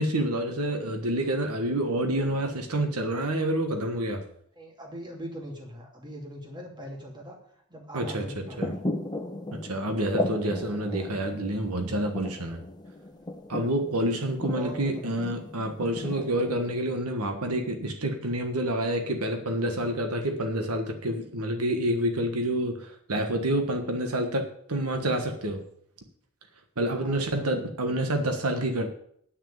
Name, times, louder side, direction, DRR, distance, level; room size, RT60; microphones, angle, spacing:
voice 1, 0.0-4.2 7.9-8.7 9.5-12.6 13.5-25.6 26.8-28.9, right 1 dB, 80° right, 6 dB, 1.5 m, -28 dB
voice 2, 4.6-7.4 7.7-8.7 14.4-15.2 26.9-27.2, right 1 dB, 20° right, 0 dB, 2.6 m, -40 dB
sound 1, 8.5-16.7, left 2 dB, 20° left, 1.2 m, -36 dB
9.8 x 6.4 x 8.7 m, 0.67 s
head